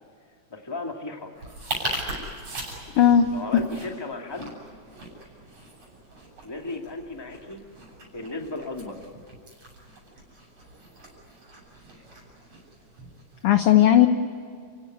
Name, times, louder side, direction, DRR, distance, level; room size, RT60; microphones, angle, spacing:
voice 1, 0.5-1.3 3.3-4.5 6.4-7.7 8.1-9.0, left 3 dB, 10° left, 2 dB, 1.9 m, -35 dB
sound 1, 1.3-13.5, right 1 dB, 50° right, 8.6 m, -39 dB
voice 2, 3.0-3.6 13.4-14.1, left 10 dB, 65° left, 8 dB, 1.5 m, -17 dB
30.0 x 17.0 x 9.8 m, 2.3 s
omnidirectional pair, 3.6 m